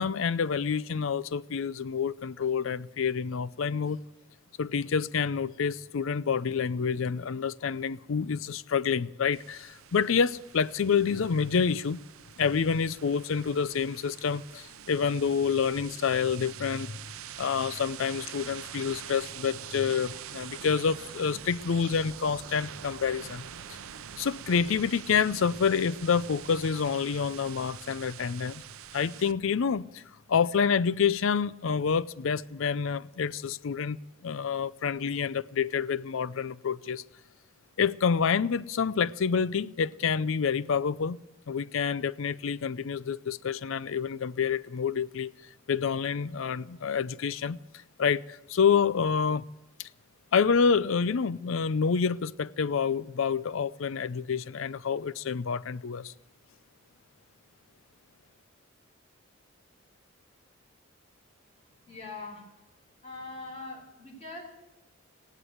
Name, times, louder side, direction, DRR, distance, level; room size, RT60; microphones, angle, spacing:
voice 1, 0.0-4.0 4.6-12.0 12.4-17.0 17.4-23.4 23.7-23.8 24.2-28.6 28.9-30.0 30.3-37.0 37.8-41.2 41.5-45.3 45.7-47.6 48.0-49.4 49.8-49.9 50.3-56.1, left 6 dB, 65° left, 0.5 m, -28 dB
sound 1, 9.3-29.3, right 9 dB, 75° right, 0.6 m, -45 dB
voice 2, 61.6-62.5 63.0-64.4, left 3 dB, 30° left, 3.2 m, -42 dB
16.5 x 11.0 x 7.9 m
head